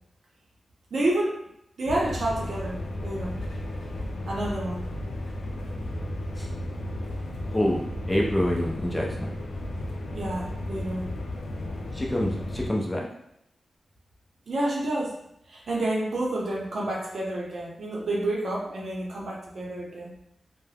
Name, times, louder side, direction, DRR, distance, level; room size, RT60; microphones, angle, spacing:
voice 1, 0.9-1.4 1.8-3.4 4.3-4.8 10.1-11.1 14.5-15.2 15.5-20.1, right 1 dB, 65° right, -3 dB, 0.7 m, -29 dB
sound 1, 1.9-12.7, left 1 dB, 85° left, 0.4 m, -34 dB
voice 2, 7.5-9.3 11.9-13.1, left 1 dB, 15° left, -1 dB, 0.4 m, -27 dB
2.3 x 2.1 x 3.3 m, 0.77 s
wide cardioid pair, 145°, 0 cm